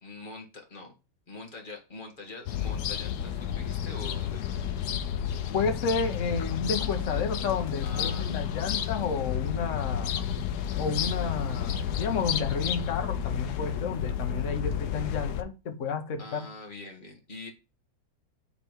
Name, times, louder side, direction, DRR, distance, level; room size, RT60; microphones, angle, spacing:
voice 1, 0.0-0.9 1.3-4.6 7.8-8.4 16.2-17.5, left 3 dB, 25° left, 1.5 m, -44 dB
sound 1, 2.5-15.4, left 9 dB, 75° left, 0.9 m, -31 dB
voice 2, 5.5-10.1 10.8-16.5, left 5 dB, 50° left, 1.0 m, -31 dB
8.6 x 3.4 x 4.5 m
omnidirectional pair, 2.3 m